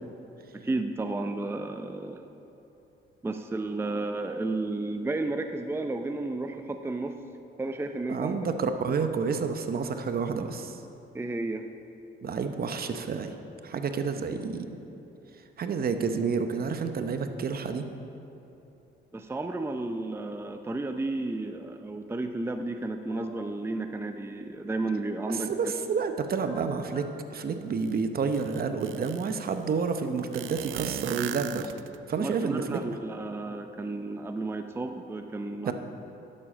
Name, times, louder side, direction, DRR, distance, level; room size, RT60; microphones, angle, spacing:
voice 1, 0.5-2.2 3.2-7.2 7.6-8.3 11.1-11.7 19.1-25.5 32.2-35.7, right 2 dB, 10° right, 6 dB, 0.5 m, -32 dB
voice 2, 8.1-10.8 12.2-13.3 13.6-14.7 15.6-17.8 25.3-27.0 27.3-31.7 32.1-33.0 35.7-35.8, right 5 dB, 50° right, 7 dB, 0.8 m, -29 dB
sound 1, 23.1-23.4 25.5-26.1 26.4-27.2, left 2 dB, 35° left, 1.8 m, -47 dB
sound 2, 27.8-27.9 28.3-29.4 30.3-32.1, right 11 dB, 80° right, 0.5 m, -37 dB
11.0 x 7.7 x 6.2 m, 2.9 s
cardioid pair, 90°, 20 cm